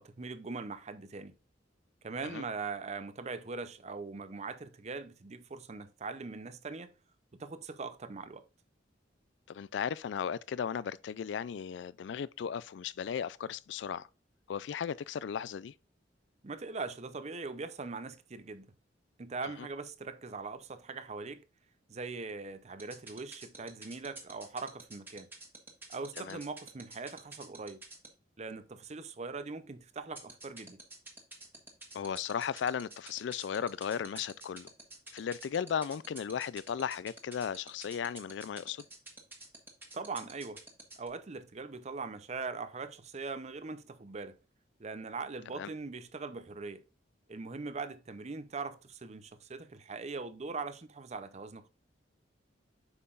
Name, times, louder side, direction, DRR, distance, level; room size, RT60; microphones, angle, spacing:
voice 1, 0.0-1.3 2.0-6.9 7.4-8.4 16.4-18.7 19.2-21.4 21.9-25.3 25.9-27.8 28.4-30.8 39.9-40.6 41.0-44.4 44.8-46.8 47.3-51.7, right 4 dB, 35° right, 0.6 m, -41 dB
voice 2, 9.5-14.1 14.5-15.7 26.2-26.4 31.9-34.7 35.1-38.8 45.5-45.7, left 7 dB, 70° left, 0.3 m, -36 dB
sound 1, 22.8-28.1 30.2-41.1, right 2 dB, 10° right, 1.4 m, -47 dB
7.9 x 5.7 x 2.4 m
head